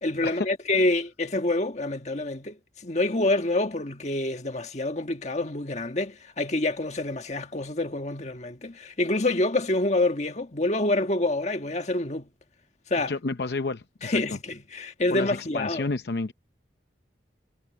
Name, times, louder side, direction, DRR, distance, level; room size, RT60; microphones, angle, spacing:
voice 1, 0.0-12.3 12.9-13.1 14.0-15.9, left 2 dB, 40° left, 1.6 m, -27 dB
voice 2, 13.1-14.2 15.1-16.3, left 3 dB, 65° left, 0.7 m, -30 dB
head